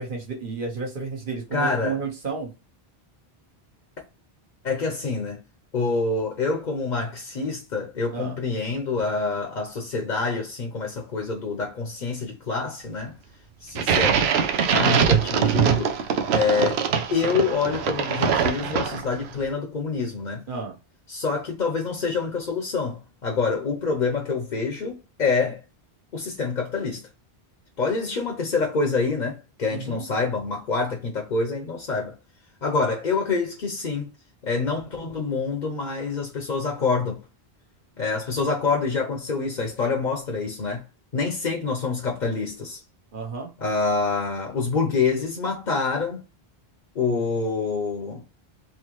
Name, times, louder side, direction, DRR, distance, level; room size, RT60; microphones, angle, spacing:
voice 1, 0.0-2.5 8.1-8.4 20.5-20.7 29.7-30.0 43.1-43.5, right 4 dB, 55° right, 1.4 m, -32 dB
voice 2, 1.5-2.0 4.6-5.4 5.7-13.2 13.6-14.1 14.7-15.9 16.3-16.8 17.1-20.4 21.1-25.6 26.1-27.1 27.8-32.1 32.6-34.1 34.4-37.2 38.0-40.8 41.1-42.8 43.6-46.2 46.9-48.2, left 4 dB, 50° left, 0.8 m, -26 dB
sound 1, 13.7-19.3, right 7 dB, 90° right, 0.9 m, -22 dB
3.6 x 2.8 x 3.0 m
omnidirectional pair, 1.0 m